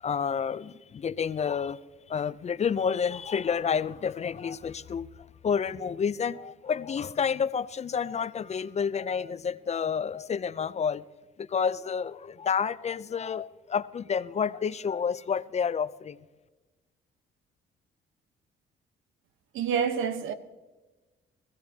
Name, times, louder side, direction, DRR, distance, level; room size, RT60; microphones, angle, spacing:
voice 1, 0.0-1.8 2.1-11.0 11.4-16.2, left 6 dB, 35° left, 0.4 m, -29 dB
voice 2, 19.5-20.3, right 7 dB, 85° right, 1.0 m, -27 dB
20.5 x 15.0 x 2.8 m
cardioid pair, 90°, 20 cm